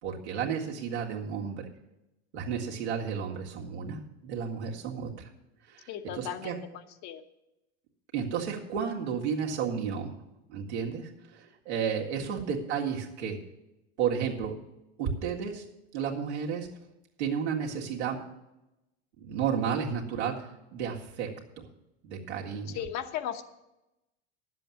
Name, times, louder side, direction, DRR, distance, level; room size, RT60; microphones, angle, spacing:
voice 1, 0.0-1.7 2.3-5.3 5.7-6.6 8.1-10.2 10.5-13.4 14.0-14.6 15.0-15.6 15.9-16.7 17.2-18.2 19.2-21.7 22.0-22.8, right 7 dB, 80° right, -1 dB, 2.0 m, -32 dB
voice 2, 5.9-6.6 7.0-7.2 22.7-23.4, left 10 dB, 55° left, 7 dB, 1.1 m, -35 dB
10.5 x 7.6 x 7.0 m, 0.93 s
hypercardioid pair, 90°, 33 cm